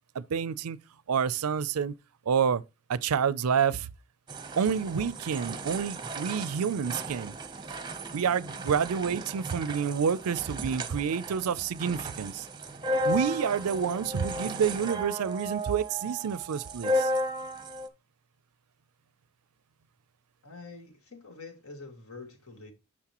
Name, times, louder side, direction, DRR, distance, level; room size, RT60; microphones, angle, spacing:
voice 1, 0.1-0.8 1.1-1.9 2.3-2.6 2.9-3.9 4.6-7.3 8.1-12.5 13.0-17.1, right 7 dB, 85° right, 0.5 m, -28 dB
sound 1, 4.3-17.9, equal, 20° right, 0.7 m, -34 dB
voice 2, 20.4-22.7, left 3 dB, 70° left, 1.8 m, -46 dB
9.8 x 6.3 x 3.0 m
head